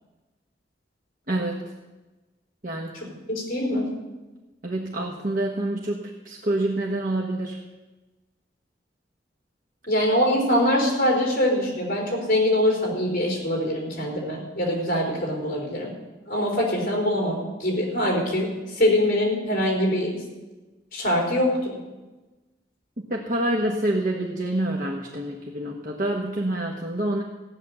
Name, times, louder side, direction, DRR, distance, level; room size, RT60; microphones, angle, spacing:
voice 1, 1.3-1.6 2.6-3.1 4.6-7.6 23.1-27.2, right 1 dB, 50° right, -1 dB, 1.2 m, -27 dB
voice 2, 2.9-3.9 9.9-15.9 16.3-20.2 20.9-21.8, left 1 dB, 50° left, -1 dB, 4.5 m, -23 dB
15.5 x 9.5 x 6.8 m, 1.2 s
head